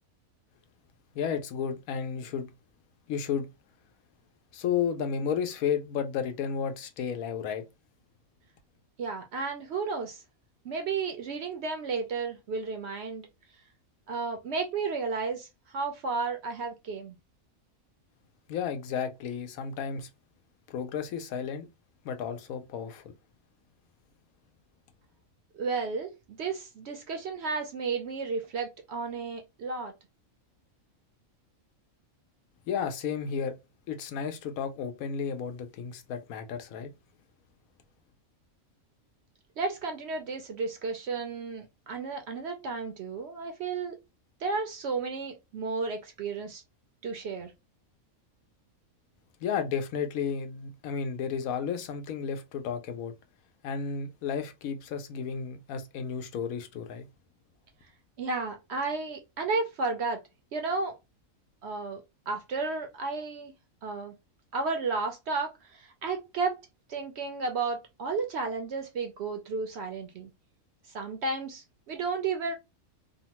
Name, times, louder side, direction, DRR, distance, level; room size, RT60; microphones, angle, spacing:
voice 1, 1.1-2.5 3.1-3.5 4.5-7.6 18.5-20.1 20.7-21.7 22.0-23.1 32.7-33.5 33.9-36.9 49.4-53.1 53.6-57.1, left 7 dB, 80° left, 1.0 m, -32 dB
voice 2, 9.0-10.2 10.6-13.3 14.1-17.2 25.5-29.9 39.6-44.0 44.4-46.6 47.0-47.5 58.2-60.2 60.5-60.9 61.6-63.5 63.8-64.1 64.5-70.3 70.9-72.5, right 4 dB, 65° right, 0.7 m, -33 dB
2.9 x 2.1 x 2.8 m
omnidirectional pair, 1.5 m